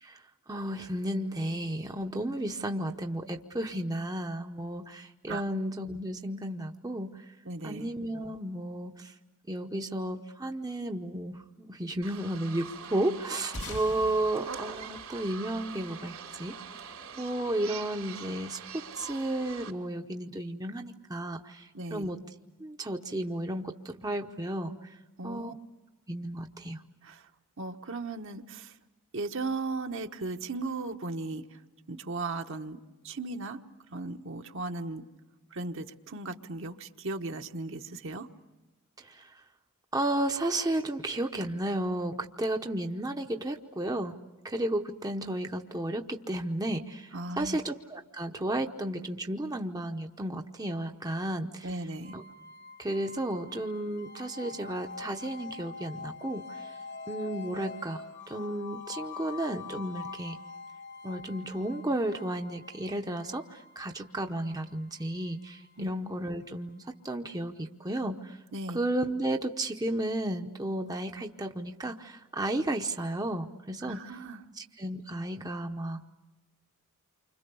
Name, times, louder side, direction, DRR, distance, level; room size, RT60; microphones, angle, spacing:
voice 1, 0.0-7.2 7.6-9.1 9.5-16.6 17.2-22.2 22.6-25.0 25.2-25.5 26.1-26.8 39.0-39.4 39.9-44.2 44.4-51.9 52.1-52.2 52.8-56.7 57.1-60.4 61.0-68.4 68.7-74.1 74.5-76.0, right 1 dB, 15° right, 4 dB, 0.8 m, -33 dB
voice 2, 7.5-7.9 21.7-22.1 25.2-25.5 27.0-27.2 27.6-28.7 29.1-31.4 31.9-33.6 33.9-35.0 35.5-38.3 47.1-47.6 51.6-52.2 65.8-65.9 68.5-68.8 73.9-74.4, right 3 dB, 60° right, 5 dB, 1.2 m, -36 dB
sound 1, 12.0-19.7, right 6 dB, 75° right, 3.6 m, -43 dB
sound 2, 13.5-16.3, left 2 dB, 75° left, 2.4 m, -44 dB
sound 3, 52.0-66.9, left 4 dB, 50° left, 1.4 m, -45 dB
29.0 x 25.5 x 6.9 m, 1.1 s
head